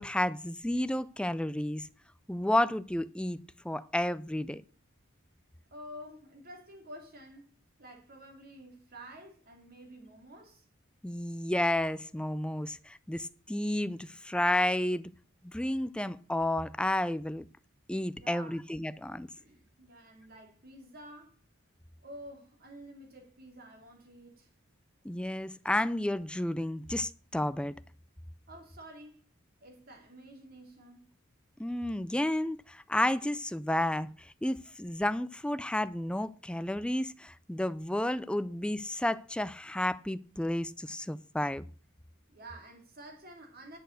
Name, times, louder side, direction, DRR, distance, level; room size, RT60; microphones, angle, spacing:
voice 1, 0.0-1.9 2.3-4.6 11.0-15.1 15.4-17.5 17.9-19.3 25.0-27.7 31.6-41.7, left 1 dB, 5° left, 0.4 m, -31 dB
voice 2, 5.7-10.6 18.1-18.6 19.4-21.4 22.0-24.5 28.5-29.3 29.6-31.1 42.3-43.8, right 1 dB, 45° right, 2.9 m, -50 dB
10.5 x 6.7 x 6.5 m
head